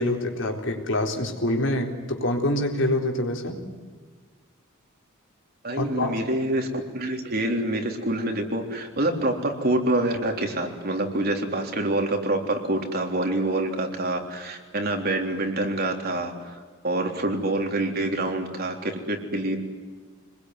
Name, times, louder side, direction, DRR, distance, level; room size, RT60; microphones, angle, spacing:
voice 1, 0.0-3.6 5.8-6.2, left 1 dB, 65° left, 3 dB, 3.9 m, -26 dB
voice 2, 5.6-16.6 16.8-19.6, right 1 dB, 50° right, 3 dB, 3.7 m, -26 dB
26.5 x 21.0 x 9.6 m, 1.5 s
head